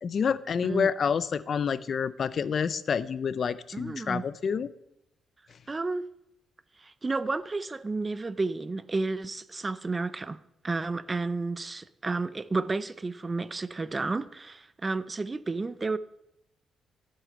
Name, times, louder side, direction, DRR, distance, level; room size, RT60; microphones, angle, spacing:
voice 1, 0.0-4.7, left 6 dB, 45° left, 0.6 m, -28 dB
voice 2, 3.7-4.2 5.7-6.0 6.8-16.0, right 3 dB, 20° right, 0.5 m, -31 dB
14.0 x 8.4 x 8.6 m
cardioid pair, 150°, 0 cm